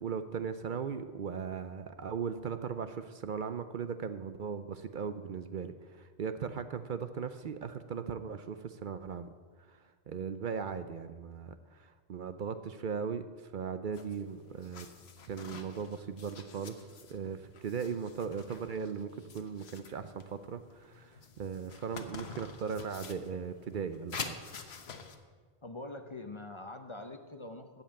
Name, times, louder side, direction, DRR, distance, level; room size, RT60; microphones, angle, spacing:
voice 1, 0.0-9.3 9.7-14.9 15.2-24.4, right 6 dB, 60° right, 10 dB, 0.7 m, -38 dB
sound 1, 13.9-25.2, left 5 dB, 85° left, 1.2 m, -48 dB
voice 2, 25.6-27.8, left 2 dB, 30° left, 6 dB, 0.7 m, -44 dB
13.5 x 5.5 x 8.7 m, 1.5 s
omnidirectional pair, 1.0 m